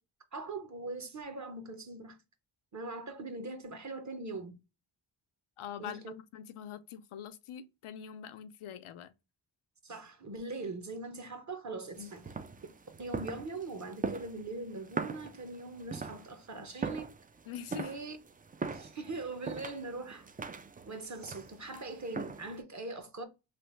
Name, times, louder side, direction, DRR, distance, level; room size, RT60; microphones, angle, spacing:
voice 1, 0.3-2.2 2.7-4.6 5.8-6.1 9.8-12.2 13.0-17.1 17.8-18.2 18.7-20.3 20.8-23.3, right 3 dB, 35° right, 0.9 m, -41 dB
voice 2, 5.6-6.0 6.3-9.1 12.0-12.1 17.5-17.9, left 9 dB, 80° left, 0.6 m, -44 dB
sound 1, 11.9-22.6, right 4 dB, 20° right, 0.3 m, -41 dB
3.3 x 2.5 x 3.1 m
cardioid pair, 60°, 49 cm